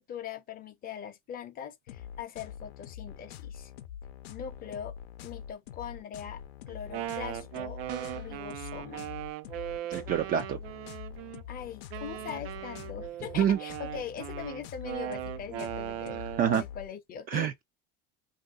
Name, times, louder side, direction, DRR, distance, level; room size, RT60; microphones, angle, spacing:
voice 1, 0.0-3.7 4.3-4.9 5.2-6.4 6.7-7.8 8.1-9.1 11.5-17.5, left 8 dB, 30° left, 0.6 m, -41 dB
sound 1, 1.9-16.9, left 9 dB, 85° left, 0.6 m, -45 dB
Wind instrument woodwind instrument, 6.7-11.4 11.9-16.6, right 14 dB, 90° right, 0.5 m, -39 dB
sound 2, 7.9-8.4, right 5 dB, 60° right, 1.0 m, -42 dB
voice 2, 9.9-10.6 13.4-13.6 16.4-16.6 17.3-17.6, right 9 dB, 30° right, 0.4 m, -26 dB
2.6 x 2.2 x 3.6 m
supercardioid pair, 125°, 29 cm